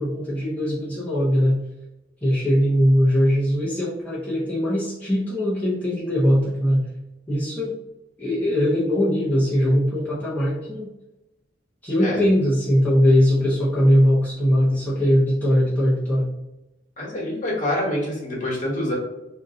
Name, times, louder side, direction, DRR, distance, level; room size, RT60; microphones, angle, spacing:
voice 1, 0.0-1.6 2.2-6.8 7.3-7.7 8.2-10.9 11.8-16.3, equal, 10° left, -8 dB, 0.5 m, -20 dB
voice 2, 17.0-19.0, left 1 dB, 40° left, -5 dB, 1.1 m, -26 dB
2.6 x 2.1 x 3.6 m, 1.0 s
head